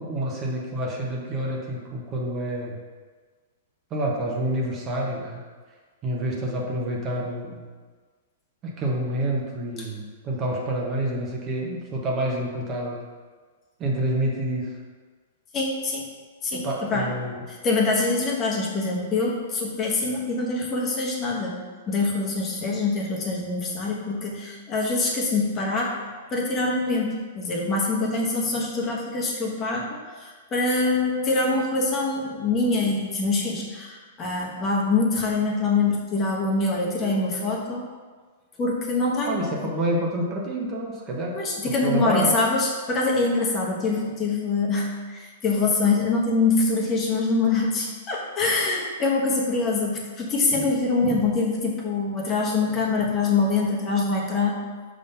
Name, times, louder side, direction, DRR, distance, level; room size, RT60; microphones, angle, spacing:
voice 1, 0.0-2.8 3.9-5.4 6.0-7.7 8.6-13.0 13.8-14.7 16.5-17.3 39.3-41.4 41.7-42.4, right 1 dB, 30° right, -2 dB, 1.1 m, -28 dB
voice 2, 15.5-16.1 16.4-17.1 17.5-21.6 21.9-25.9 26.3-37.9 38.6-39.7 41.3-54.6, left 3 dB, 25° left, -2 dB, 1.2 m, -24 dB
5.4 x 3.7 x 5.5 m, 1.5 s
hypercardioid pair, 135°, 0 cm